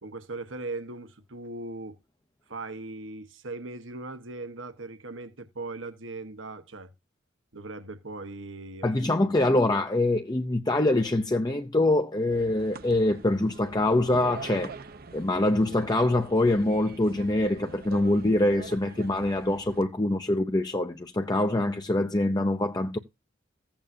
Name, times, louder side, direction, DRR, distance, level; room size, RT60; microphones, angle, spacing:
voice 1, 0.0-2.0 2.5-6.9 7.5-8.9 9.2-9.3, right 2 dB, 75° right, 1.4 m, -39 dB
voice 2, 8.8-14.7 15.1-23.0, left 1 dB, 20° left, 0.7 m, -24 dB
sound 1, 12.3-19.8, right 3 dB, 50° right, 0.8 m, -44 dB
15.0 x 8.7 x 2.7 m
head